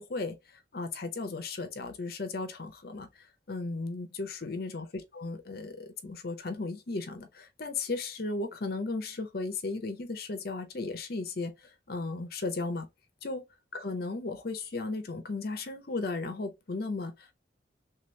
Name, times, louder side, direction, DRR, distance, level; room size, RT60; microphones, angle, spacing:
voice 1, 0.0-12.9 13.2-13.5 13.7-17.3, left 3 dB, 55° left, 0.6 m, -35 dB
3.2 x 2.9 x 3.1 m
head